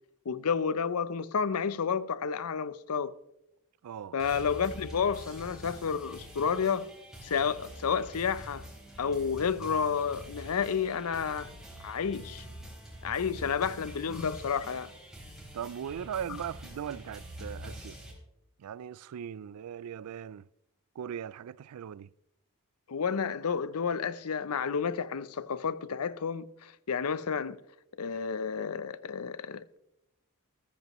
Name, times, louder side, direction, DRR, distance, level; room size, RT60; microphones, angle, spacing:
voice 1, 0.3-3.1 4.1-6.9 7.2-8.7 9.0-11.5 11.8-12.4 13.0-14.9 22.9-27.6 28.0-29.8, left 6 dB, 85° left, 0.6 m, -31 dB
voice 2, 3.8-4.1 13.4-13.5 15.5-18.0 18.6-20.4 21.0-22.1, right 8 dB, 85° right, 0.4 m, -39 dB
sound 1, 4.2-18.1, equal, ahead, 4.0 m, -46 dB
sound 2, 10.1-15.3, equal, 25° left, 3.1 m, -56 dB
14.5 x 13.5 x 3.1 m
head